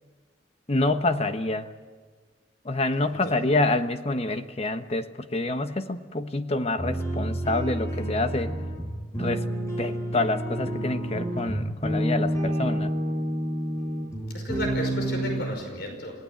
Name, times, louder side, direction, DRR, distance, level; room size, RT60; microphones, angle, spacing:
voice 1, 0.7-1.7 2.6-8.5 9.2-9.4 9.8-12.9, left 2 dB, 35° left, 9 dB, 1.1 m, -27 dB
sound 1, 6.8-15.4, right 1 dB, 15° left, 5.9 m, -29 dB
voice 2, 14.3-16.1, left 1 dB, 60° left, 3 dB, 5.2 m, -33 dB
28.5 x 17.5 x 8.8 m, 1.5 s
head